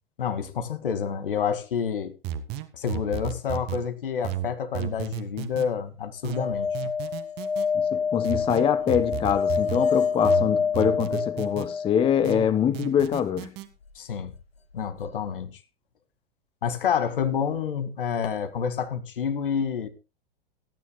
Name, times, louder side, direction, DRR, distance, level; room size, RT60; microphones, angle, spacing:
voice 1, 0.2-2.2 2.7-6.9 14.0-14.3 14.7-15.6 16.6-19.9, left 7 dB, 65° left, 2.2 m, -28 dB
sound 1, 2.2-3.8 4.2-5.7 6.2-7.7 8.2-9.8 10.2-11.7 12.2-13.7, right 11 dB, 35° right, 1.7 m, -33 dB
sound 2, 6.3-12.5 14.8-14.9 15.0-15.1, left 5 dB, 85° left, 0.8 m, -27 dB
voice 2, 7.7-13.5, left 9 dB, 20° left, 0.8 m, -24 dB
26.5 x 10.0 x 2.2 m
figure-of-eight pair, 95°, 30 cm